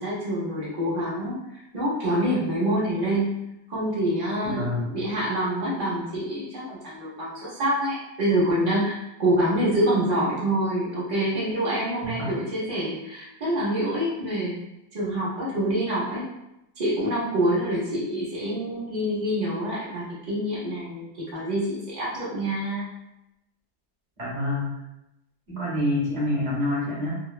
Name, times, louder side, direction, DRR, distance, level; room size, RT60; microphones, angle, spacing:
voice 1, 0.0-3.3 3.7-14.5 14.9-16.2 16.8-22.9, right 1 dB, 90° right, -7 dB, 0.3 m, -26 dB
voice 2, 4.4-4.9 12.0-12.3 24.2-24.7 25.5-27.2, left 1 dB, 40° right, -6 dB, 0.7 m, -27 dB
2.8 x 2.0 x 2.3 m, 0.90 s
omnidirectional pair, 1.8 m